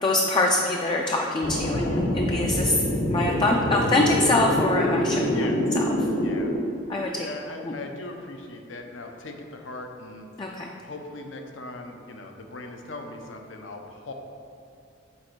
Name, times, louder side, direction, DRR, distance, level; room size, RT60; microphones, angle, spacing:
voice 1, 0.0-2.8 3.1-5.9 6.9-7.3 7.6-7.7 10.4-10.7, left 2 dB, 25° left, 0 dB, 0.4 m, -24 dB
sound 1, 1.4-6.5, left 1 dB, 55° left, 1.0 m, -25 dB
voice 2, 6.1-6.5 7.1-10.3 10.8-14.1, left 2 dB, 75° left, 4 dB, 0.7 m, -39 dB
7.4 x 4.2 x 4.6 m, 2.7 s
head